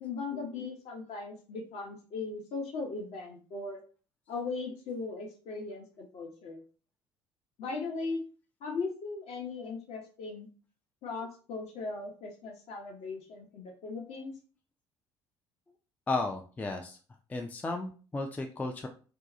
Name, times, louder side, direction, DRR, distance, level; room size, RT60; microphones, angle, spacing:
voice 1, 0.0-3.8 4.3-6.6 7.6-8.2 8.6-10.5 11.0-14.3, left 4 dB, 50° left, 3 dB, 0.7 m, -38 dB
voice 2, 16.1-17.0 17.3-18.9, left 2 dB, 10° left, 4 dB, 0.3 m, -34 dB
2.7 x 2.2 x 2.4 m, 0.38 s
figure-of-eight pair, 55°, 14 cm